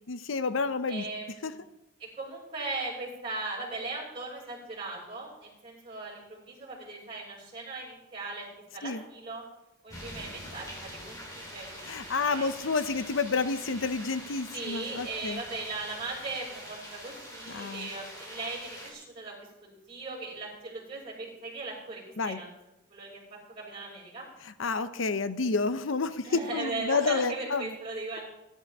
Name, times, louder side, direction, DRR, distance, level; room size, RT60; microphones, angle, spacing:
voice 1, 0.1-1.0 1.4-1.5 8.8-9.0 11.9-15.4 17.5-17.9 22.2-22.4 24.6-27.7, left 4 dB, 85° left, 12 dB, 0.7 m, -29 dB
voice 2, 0.9-1.6 2.0-8.5 8.7-9.4 9.8-12.9 14.5-22.5 22.9-24.3 26.2-28.2, right 3 dB, 30° right, -6 dB, 5.7 m, -39 dB
sound 1, 9.9-18.9, equal, 20° left, 3.5 m, -44 dB
20.0 x 11.0 x 3.6 m, 0.92 s
head